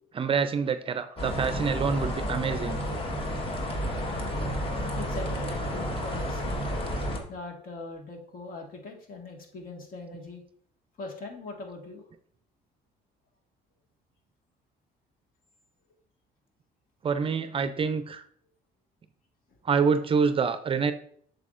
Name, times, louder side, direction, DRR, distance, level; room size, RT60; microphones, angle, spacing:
voice 1, 0.1-2.8 17.0-18.2 19.6-20.9, right 5 dB, 30° right, 11 dB, 0.5 m, -26 dB
sound 1, 1.2-7.2, equal, 30° left, 1.4 m, -31 dB
voice 2, 5.0-6.6 7.3-10.4 11.0-12.0 19.5-19.6, left 3 dB, 55° left, 2 dB, 1.8 m, -41 dB
8.2 x 6.6 x 2.5 m, 0.62 s
cardioid pair, 110°, 17 cm